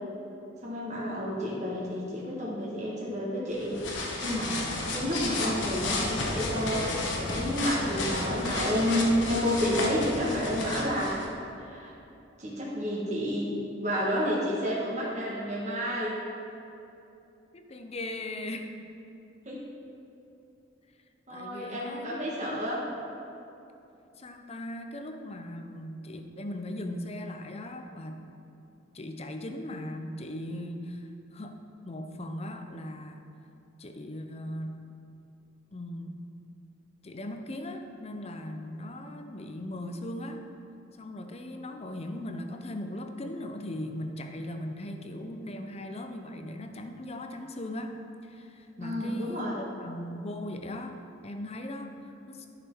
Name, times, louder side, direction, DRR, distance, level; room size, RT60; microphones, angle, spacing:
voice 1, 0.6-11.2 11.6-11.9 12.4-13.5 13.8-16.2 19.4-19.6 21.3-22.8 48.8-49.6, equal, 40° right, -6 dB, 1.4 m, -30 dB
sound 1, 3.5-11.3, left 2 dB, 70° left, 1.2 m, -32 dB
voice 2, 17.5-18.7 21.3-22.7 24.1-28.2 28.9-33.3 33.8-34.8 35.7-36.2 37.0-40.4 41.0-48.0 48.2-51.0 51.2-52.5, left 1 dB, 35° left, 6 dB, 0.6 m, -39 dB
11.0 x 5.9 x 4.5 m, 2.8 s
head